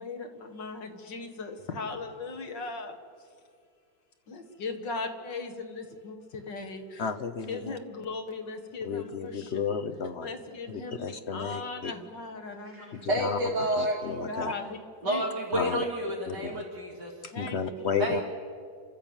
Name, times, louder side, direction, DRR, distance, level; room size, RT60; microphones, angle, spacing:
voice 1, 0.0-3.0 4.3-7.1 7.5-9.6 10.2-13.0 14.2-14.8 15.1-15.6 16.3-16.4 17.3-17.6 18.0-18.1, left 3 dB, 85° left, 5 dB, 2.4 m, -38 dB
voice 2, 7.0-7.8 8.8-10.3 10.7-11.9 12.9-13.4 13.8-14.5 15.5-15.8 16.3-16.6 17.2-18.2, left 6 dB, 50° left, 8 dB, 0.9 m, -33 dB
voice 3, 12.6-14.0 15.0-17.1 18.0-18.2, right 1 dB, 75° right, -4 dB, 3.2 m, -30 dB
29.5 x 13.0 x 8.9 m, 2.3 s
omnidirectional pair, 1.9 m